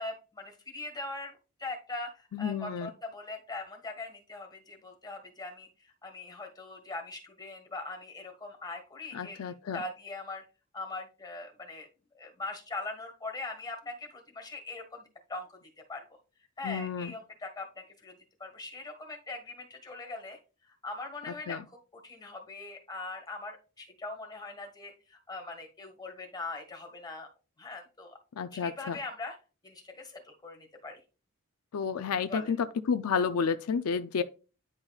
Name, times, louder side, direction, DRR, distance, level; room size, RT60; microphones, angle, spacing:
voice 1, 0.0-10.4 10.7-11.9 12.1-15.6 15.9-16.0 16.6-18.1 18.4-21.8 22.0-27.3 27.6-28.2 28.5-29.4 29.6-31.0 32.3-32.5, left 3 dB, 20° left, 1.6 m, -41 dB
voice 2, 2.3-2.9 9.1-9.8 16.6-17.1 21.5-21.6 28.4-29.0 31.7-32.6 32.9-34.2, left 6 dB, 80° left, 0.4 m, -31 dB
9.6 x 5.4 x 2.3 m
head